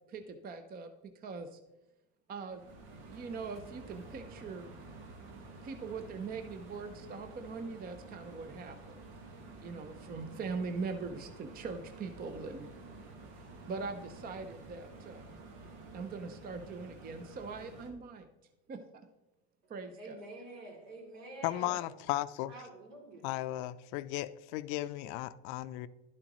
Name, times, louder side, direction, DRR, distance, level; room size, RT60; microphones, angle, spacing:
voice 1, 0.1-1.6 2.3-2.6 3.1-4.7 5.6-9.0 9.6-12.7 13.7-15.3 15.9-18.3 18.7-19.1 19.7-20.2, right 4 dB, 25° right, 0.6 m, -41 dB
sound 1, 2.5-17.9, right 2 dB, 90° right, 1.7 m, -51 dB
voice 2, 20.0-21.9 22.5-23.3, right 2 dB, 70° right, 3.1 m, -48 dB
voice 3, 21.4-22.5 23.2-25.9, left 15 dB, 65° left, 0.5 m, -35 dB
11.5 x 7.5 x 3.0 m
supercardioid pair, 120°, 34 cm